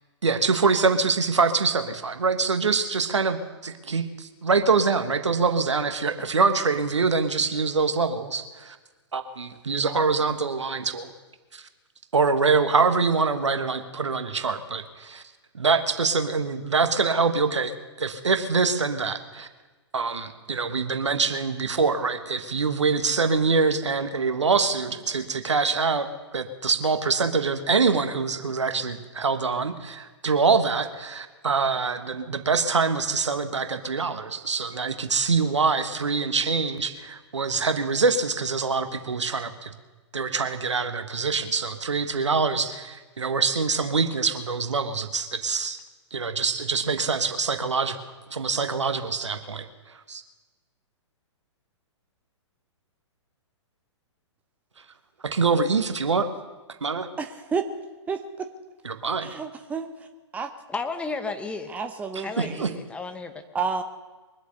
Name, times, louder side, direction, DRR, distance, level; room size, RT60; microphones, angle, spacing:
voice 1, 0.2-8.8 9.1-11.1 11.5-11.6 12.1-15.2 15.5-19.5 19.9-26.1 26.3-39.7 40.1-45.8 46.1-48.0 48.3-49.7 50.1-50.2 55.2-56.3 56.8-57.1 58.8-59.3 62.4-62.7, right 4 dB, 70° right, 9 dB, 1.4 m, -24 dB
voice 2, 57.2-57.7 58.1-58.5 59.2-60.1 60.3-60.5 61.7-62.7 63.5-63.8, right 5 dB, 10° right, 6 dB, 0.8 m, -30 dB
voice 3, 60.7-61.7 62.2-63.4, left 4 dB, 5° left, 6 dB, 1.1 m, -33 dB
23.0 x 8.1 x 6.8 m, 1.3 s
figure-of-eight pair, 115°, 15 cm